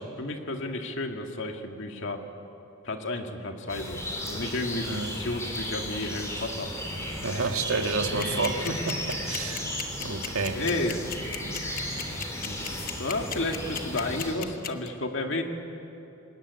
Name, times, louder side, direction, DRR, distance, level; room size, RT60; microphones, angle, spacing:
voice 1, 0.2-2.2 2.8-6.7 8.6-8.9 10.5-11.0 12.4-12.7 13.0-15.4, left 2 dB, 60° left, 3 dB, 2.1 m, -32 dB
sound 1, 3.7-14.3, left 1 dB, 15° left, 4.0 m, -35 dB
voice 2, 4.8-5.1 7.2-9.7 10.0-10.6, right 3 dB, 85° right, 4 dB, 2.0 m, -30 dB
sound 2, 8.2-14.9, left 9 dB, 40° left, 1.2 m, -34 dB
25.5 x 21.0 x 9.7 m, 3.0 s
head